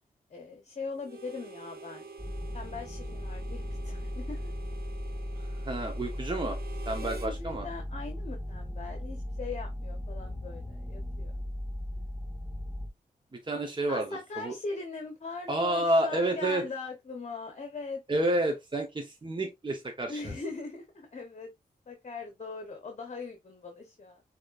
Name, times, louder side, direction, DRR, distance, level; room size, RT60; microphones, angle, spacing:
voice 1, 0.3-2.1 2.5-4.5 7.0-11.3 13.9-18.0 20.1-21.5 21.9-24.2, left 3 dB, 45° left, 1.0 m, -40 dB
Harmonica, 1.0-7.3, right 4 dB, 80° right, 0.9 m, -47 dB
sound 1, 2.2-12.9, left 1 dB, 10° right, 2.0 m, -37 dB
voice 2, 5.4-6.6 6.9-7.7 13.4-14.5 15.5-16.7 18.1-20.3, right 1 dB, 30° right, 1.1 m, -30 dB
6.4 x 3.1 x 2.5 m
cardioid pair, 65°, 16 cm